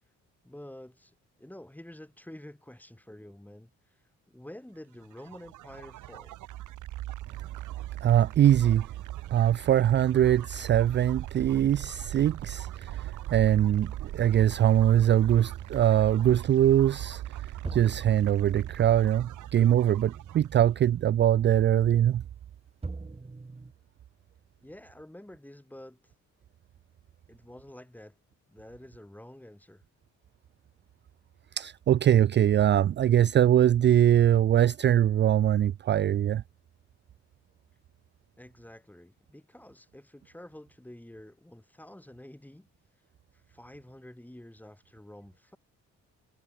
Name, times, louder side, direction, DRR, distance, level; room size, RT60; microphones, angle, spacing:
voice 1, 0.4-3.7 4.3-6.3 24.6-26.0 27.3-28.2 28.5-29.8 38.4-42.7 43.5-45.6, left 1 dB, 5° left, 5.3 m, -48 dB
sound 1, 5.0-20.7, right 15 dB, 85° right, 1.8 m, -40 dB
voice 2, 8.0-8.9 9.3-22.2 31.6-36.4, right 11 dB, 40° right, 0.4 m, -22 dB
sound 2, 17.6-20.6 20.9-21.0 22.8-23.7, right 3 dB, 20° right, 2.3 m, -42 dB
cardioid pair, 90°, 30 cm